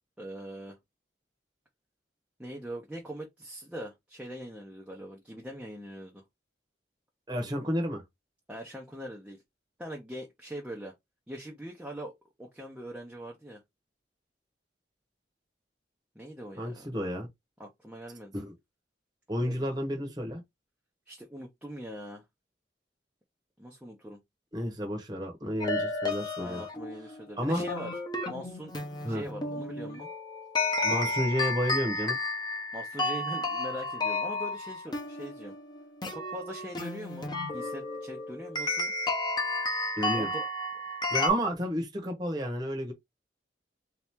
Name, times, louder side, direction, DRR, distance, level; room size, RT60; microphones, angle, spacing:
voice 1, 0.2-0.8 2.4-6.2 8.5-9.4 9.8-10.9 11.3-12.1 12.4-13.6 16.1-16.9 17.6-18.4 19.4-19.7 21.1-22.2 23.6-24.2 26.4-28.0 28.3-28.7 29.1-30.1 32.7-35.5 36.1-38.9 40.1-40.4, equal, 5° right, 0.7 m, -42 dB
voice 2, 7.3-8.0 16.6-17.3 18.3-18.5 19.3-20.4 24.5-26.6 27.4-27.6 29.0-29.2 30.8-32.2 40.0-40.3 41.1-42.9, equal, 25° right, 1.1 m, -31 dB
sound 1, 25.6-41.3, left 2 dB, 25° left, 0.9 m, -32 dB
3.7 x 2.9 x 3.6 m
head